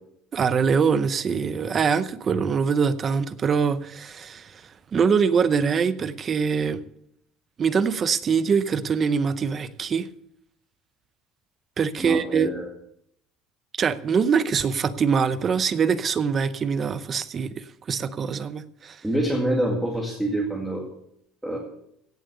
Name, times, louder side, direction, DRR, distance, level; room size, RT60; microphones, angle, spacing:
voice 1, 0.3-4.6 4.9-6.8 7.6-10.1 11.8-12.5 13.8-19.0, right 6 dB, 25° right, 14 dB, 0.7 m, -23 dB
voice 2, 12.0-12.7 19.0-20.9 21.4-21.6, right 1 dB, 5° right, -1 dB, 2.1 m, -26 dB
17.0 x 7.6 x 6.8 m, 0.73 s
cardioid pair, 170°, 0 cm